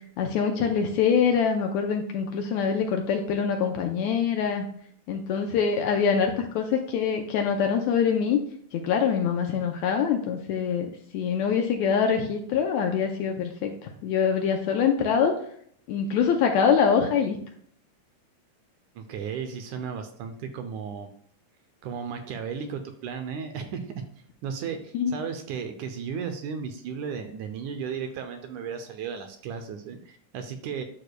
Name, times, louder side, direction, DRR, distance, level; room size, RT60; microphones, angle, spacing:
voice 1, 0.2-4.6 5.1-8.4 8.7-15.3 15.9-17.4 24.9-25.1, left 6 dB, 80° left, 4 dB, 1.7 m, -24 dB
voice 2, 19.0-21.1 21.8-23.9 24.4-30.8, right 6 dB, 75° right, 6 dB, 1.9 m, -35 dB
9.9 x 6.3 x 2.2 m, 0.62 s
omnidirectional pair, 3.9 m